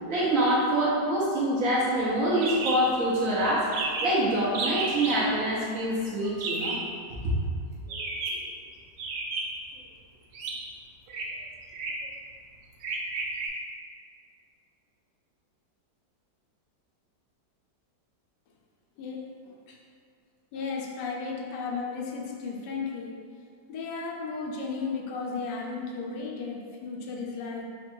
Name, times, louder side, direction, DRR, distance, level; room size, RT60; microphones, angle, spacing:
voice 1, 0.1-6.7, right 1 dB, 55° right, -7 dB, 1.1 m, -25 dB
sound 1, 2.4-2.8 3.1-3.2 3.4-3.5 3.7-4.2 4.5-5.2 6.4-6.9 7.9-8.4 9.0-9.7 10.3-10.5 11.1-11.3 11.7-12.1 12.8-13.5, right 3 dB, 85° right, 1.3 m, -32 dB
voice 2, 19.0-19.8 20.5-23.2 23.7-27.7, left 4 dB, 75° left, -1 dB, 1.2 m, -34 dB
4.3 x 2.4 x 4.3 m, 2.2 s
omnidirectional pair, 1.9 m